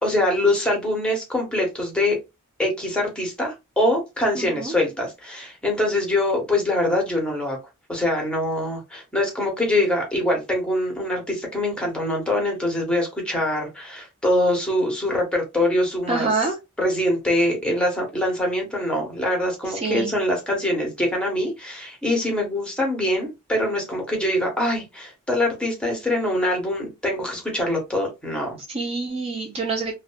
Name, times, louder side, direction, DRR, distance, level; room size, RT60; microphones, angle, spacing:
voice 1, 0.0-2.2 2.6-7.6 7.9-16.3 16.8-28.6, left 1 dB, 5° left, 0.9 m, -24 dB
voice 2, 4.3-4.7 16.1-16.6 19.6-20.1 28.7-29.9, right 3 dB, 25° right, 0.4 m, -26 dB
2.4 x 2.2 x 2.4 m
head